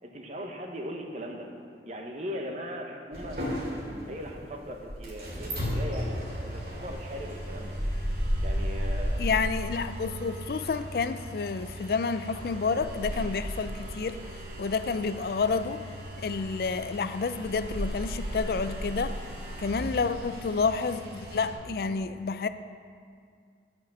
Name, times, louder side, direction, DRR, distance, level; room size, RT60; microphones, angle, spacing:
voice 1, 0.0-1.5 1.8-3.4 4.1-7.8 8.4-9.2, equal, 40° right, 2 dB, 1.0 m, -39 dB
sound 1, 3.1-21.5, equal, 55° right, 2.6 m, -35 dB
voice 2, 9.2-14.2 14.6-15.8 16.2-19.2 19.6-22.5, left 4 dB, 55° left, 12 dB, 0.4 m, -29 dB
10.0 x 6.1 x 6.3 m, 2.2 s
head